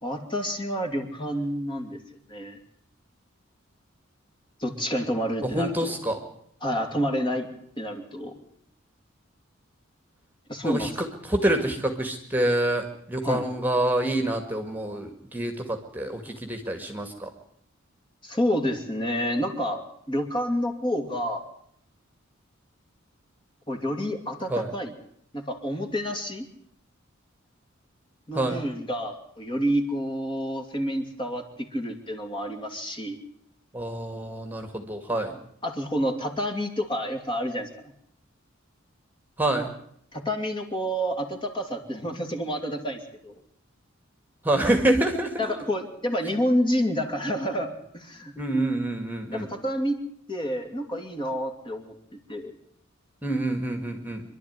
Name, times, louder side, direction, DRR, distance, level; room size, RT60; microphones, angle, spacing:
voice 1, 0.0-2.0 2.3-2.6 4.6-5.9 6.6-7.5 7.8-8.3 10.5-10.9 13.2-13.5 18.2-19.8 20.1-21.4 23.7-24.9 25.3-26.5 28.3-33.2 35.6-37.7 40.1-43.3 45.4-48.3 49.3-50.0 50.3-52.5, equal, 25° left, 5 dB, 2.7 m, -29 dB
voice 2, 5.4-6.2 10.6-17.3 24.5-24.7 28.3-28.6 33.7-35.4 39.4-39.7 44.4-45.4 48.4-49.5 53.2-54.2, right 1 dB, 10° right, 5 dB, 1.9 m, -27 dB
25.5 x 12.0 x 9.5 m, 0.71 s
head